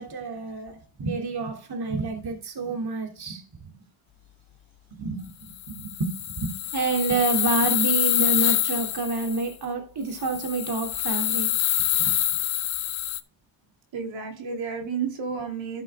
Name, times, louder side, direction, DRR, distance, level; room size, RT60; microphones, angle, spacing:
voice 1, 0.0-3.4 3.7-3.8 5.0-11.5 12.0-12.3, right 3 dB, 55° right, 3.1 m, -28 dB
sound 1, 5.5-9.5 10.2-13.2, left 13 dB, 85° left, 1.1 m, -26 dB
voice 2, 13.9-15.8, right 6 dB, 75° right, 3.4 m, -31 dB
13.5 x 6.3 x 3.6 m
cardioid pair, 60°, 47 cm